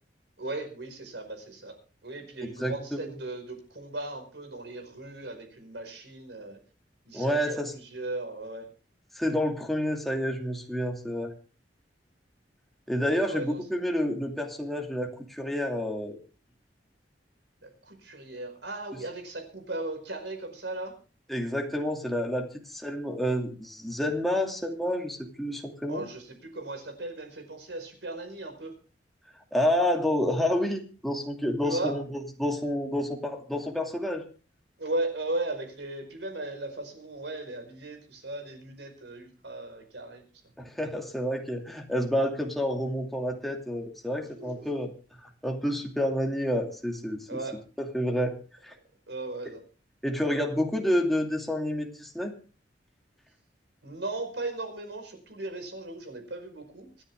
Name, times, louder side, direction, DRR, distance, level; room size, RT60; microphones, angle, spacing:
voice 1, 0.4-1.7 2.0-6.6 7.1-8.6 13.2-13.6 17.6-20.9 25.9-28.7 31.6-32.0 34.8-40.2 44.4-44.7 47.3-47.6 49.1-49.6 53.8-57.0, right 2 dB, 75° right, 5 dB, 5.1 m, -37 dB
voice 2, 2.4-3.1 7.1-7.7 9.1-11.3 12.9-16.2 21.3-26.0 29.5-34.2 40.6-44.9 45.4-47.4 47.8-48.4 48.6-48.7 50.0-52.3, left 1 dB, ahead, 1 dB, 2.7 m, -29 dB
26.0 x 10.0 x 3.7 m, 0.35 s
head